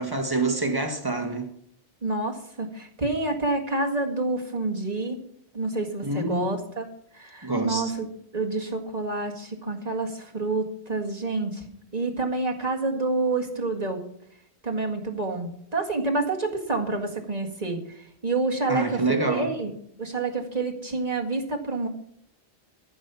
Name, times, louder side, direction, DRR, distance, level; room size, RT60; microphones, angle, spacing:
voice 1, 0.0-1.5 6.0-6.6 7.4-7.9 18.7-19.5, right 2 dB, 20° right, 1.8 m, -26 dB
voice 2, 2.0-5.2 5.5-6.9 7.1-8.1 8.3-11.6 11.9-14.0 14.6-19.7 20.0-21.9, right 3 dB, 40° right, 2.0 m, -28 dB
14.0 x 6.4 x 7.0 m
omnidirectional pair, 1.1 m